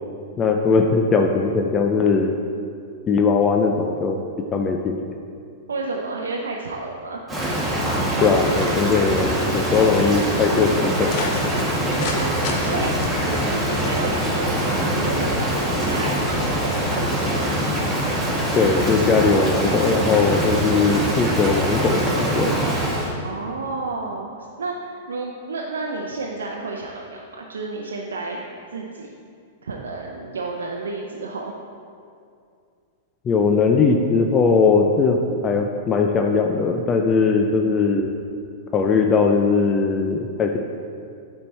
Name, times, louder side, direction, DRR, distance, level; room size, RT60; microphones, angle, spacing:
voice 1, 0.4-2.3 3.1-4.2 4.5-5.0 8.2-11.1 18.5-22.5 33.3-38.1 38.7-40.6, left 4 dB, 25° left, 3 dB, 0.5 m, -19 dB
voice 2, 5.7-7.2 11.9-12.3 12.6-17.5 23.2-28.5 28.7-29.1 29.6-31.5, right 3 dB, 90° right, -1 dB, 0.6 m, -31 dB
Rain, 7.3-23.1, right 1 dB, 10° right, 1.5 m, -23 dB
sound 1, 11.0-12.2 12.4-12.6 13.0-14.3, left 4 dB, 50° left, 1.1 m, -31 dB
8.4 x 4.5 x 4.2 m, 2.4 s
hypercardioid pair, 115°, 0 cm